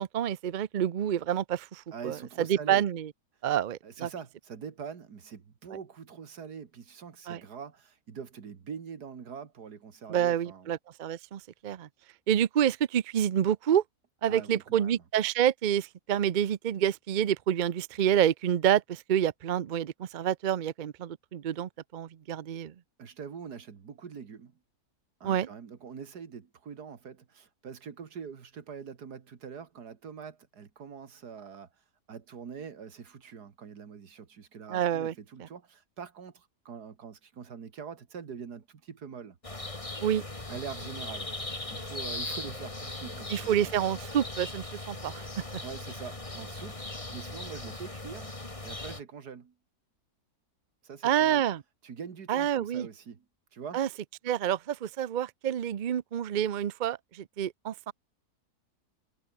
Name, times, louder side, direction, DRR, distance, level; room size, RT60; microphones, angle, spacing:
voice 1, 0.0-3.1 3.4-4.1 7.3-7.4 10.1-11.9 12.3-13.8 14.2-22.7 25.2-25.5 34.7-35.1 40.0-40.2 43.3-45.2 51.0-51.6 52.3-52.9 53.7-53.9 54.2-57.9, right 10 dB, 60° right, 0.5 m, -28 dB
voice 2, 1.9-2.9 3.8-10.7 14.3-15.0 23.0-24.6 25.2-31.7 32.1-39.4 40.5-41.3 41.7-43.7 45.6-48.3 48.6-49.5 50.8-51.4 51.8-53.3 53.5-53.8, right 6 dB, 90° right, 2.3 m, -44 dB
sound 1, 39.4-49.0, left 2 dB, 20° left, 2.5 m, -39 dB
omnidirectional pair, 1.6 m